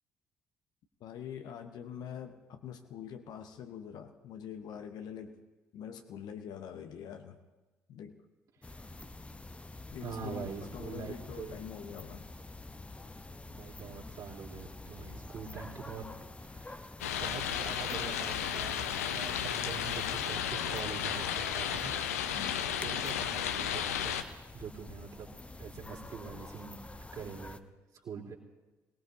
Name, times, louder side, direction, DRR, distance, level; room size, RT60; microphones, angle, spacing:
voice 1, 1.0-5.4 5.7-7.4 7.9-8.2 9.9-12.3 22.3-22.7, left 8 dB, 55° left, 7 dB, 1.0 m, -44 dB
sound 1, 8.6-27.6, left 2 dB, 15° left, 0.8 m, -47 dB
voice 2, 10.0-11.7 13.3-16.1 16.4-16.9 17.2-21.9 22.8-24.2 24.5-25.3 25.6-27.6 28.0-28.4, right 6 dB, 50° right, -4 dB, 3.6 m, -44 dB
sound 2, 17.0-24.2, left 9 dB, 75° left, 0.6 m, -33 dB
26.0 x 19.0 x 2.8 m, 1.2 s
figure-of-eight pair, 45°, 8 cm